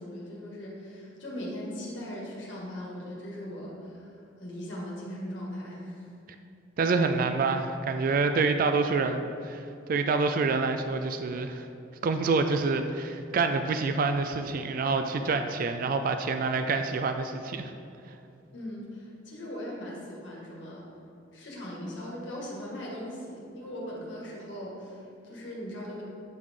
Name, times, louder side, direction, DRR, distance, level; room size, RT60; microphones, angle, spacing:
voice 1, 0.0-6.1 18.5-20.9 21.3-26.0, equal, 75° left, -4 dB, 1.8 m, -39 dB
voice 2, 6.8-11.7 12.0-17.7, right 4 dB, 45° right, 7 dB, 0.3 m, -27 dB
9.3 x 4.8 x 3.6 m, 2.6 s
head